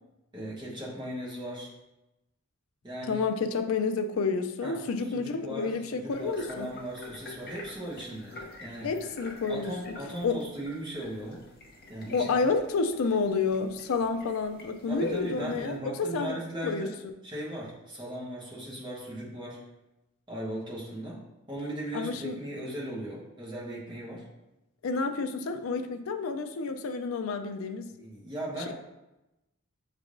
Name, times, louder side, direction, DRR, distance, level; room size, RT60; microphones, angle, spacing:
voice 1, 0.3-1.7 2.8-3.2 4.6-4.8 5.1-8.9 9.5-11.5 11.9-12.3 14.9-16.9 17.2-19.6 20.3-24.2 28.0-28.7, right 1 dB, 20° right, -6 dB, 1.1 m, -38 dB
voice 2, 3.1-6.7 8.8-10.0 10.2-10.4 12.1-16.4 16.6-16.9 21.9-22.4 24.8-27.9, left 4 dB, 85° left, 7 dB, 0.4 m, -29 dB
sound 1, 6.1-15.8, left 2 dB, 45° left, 0.7 m, -48 dB
5.8 x 3.3 x 2.6 m, 0.96 s
head